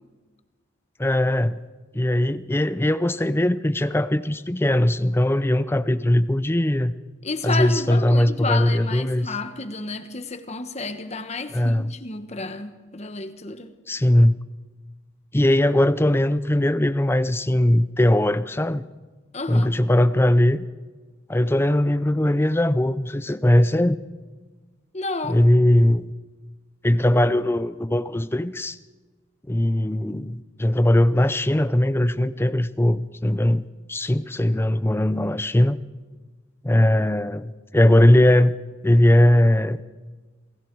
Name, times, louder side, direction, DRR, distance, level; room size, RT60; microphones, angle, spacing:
voice 1, 1.0-1.6 1.9-6.9 7.4-9.3 11.5-11.9 13.9-14.4 15.3-18.8 19.5-20.7 21.3-24.0 25.2-26.1 26.8-28.8 29.5-35.8 36.6-38.6 38.8-39.8, left 1 dB, 10° left, 0.5 m, -20 dB
voice 2, 7.2-13.7 19.3-19.7 24.9-25.4, left 3 dB, 35° left, 1.3 m, -31 dB
28.5 x 22.5 x 4.7 m
head